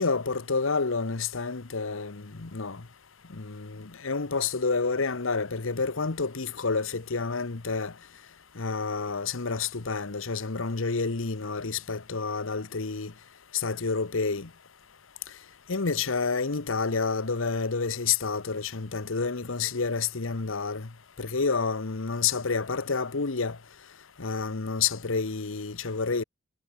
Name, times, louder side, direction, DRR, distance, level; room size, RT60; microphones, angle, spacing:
voice 1, 0.0-2.8 3.3-7.9 8.6-13.1 13.5-14.5 15.7-20.9 21.2-23.6 24.2-26.2, left 4 dB, 65° left, 1.1 m, -29 dB
head